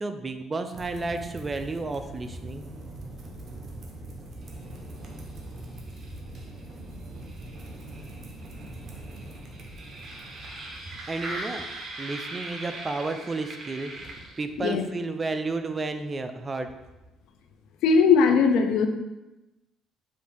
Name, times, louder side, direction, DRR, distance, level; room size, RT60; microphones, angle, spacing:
voice 1, 0.0-2.6 11.1-11.7 12.0-14.1 14.4-16.7, right 3 dB, 30° right, 8 dB, 0.4 m, -32 dB
sound 1, 0.7-14.6, right 2 dB, 45° right, 0.8 m, -40 dB
voice 2, 17.8-18.9, left 5 dB, 80° left, 6 dB, 0.4 m, -19 dB
4.8 x 2.5 x 3.4 m, 1.0 s
cardioid pair, 85°, 0 cm